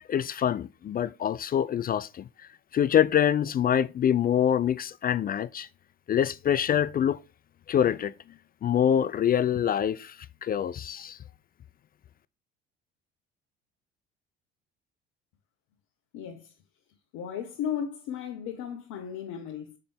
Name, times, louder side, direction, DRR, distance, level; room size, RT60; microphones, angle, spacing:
voice 1, 0.0-2.2 2.7-5.7 6.1-7.2 7.7-8.1 8.6-10.1 10.4-11.2, left 9 dB, 30° left, 0.4 m, -25 dB
voice 2, 16.1-16.5 17.1-19.8, left 8 dB, 65° left, 1.2 m, -35 dB
6.6 x 5.9 x 3.4 m
hypercardioid pair, 60°, 31 cm